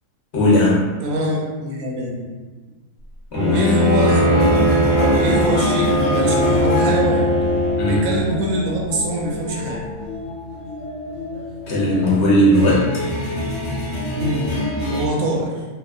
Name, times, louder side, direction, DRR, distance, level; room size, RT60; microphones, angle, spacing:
voice 1, 0.3-0.8 3.3-3.6 7.8-8.0 11.7-12.9, equal, 60° left, -6 dB, 0.9 m, -17 dB
voice 2, 1.0-2.3 3.5-7.3 7.8-9.8 14.1-14.5 14.9-15.7, right 1 dB, 80° right, -2 dB, 1.0 m, -24 dB
Bowed string instrument, 3.3-8.2, equal, 30° right, 0.6 m, -20 dB
sound 1, 4.0-15.1, left 1 dB, 85° left, 1.0 m, -25 dB
2.9 x 2.0 x 2.3 m, 1.3 s
omnidirectional pair, 1.5 m